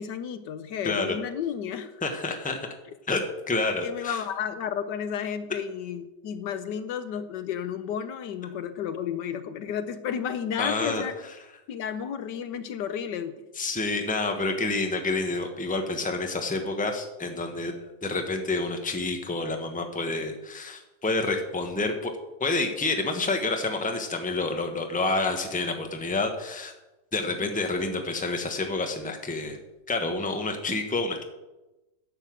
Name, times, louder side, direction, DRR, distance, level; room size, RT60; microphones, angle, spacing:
voice 1, 0.0-1.9 3.8-11.1 11.7-13.4 27.4-27.5, left 8 dB, 70° left, 11 dB, 1.3 m, -32 dB
voice 2, 0.8-1.2 2.0-2.7 3.1-4.2 10.6-11.0 13.6-17.7 18.0-22.1 22.4-26.7 27.1-29.6 29.9-31.2, left 3 dB, 5° left, 4 dB, 1.0 m, -28 dB
11.0 x 6.8 x 7.6 m, 1.0 s
omnidirectional pair, 2.0 m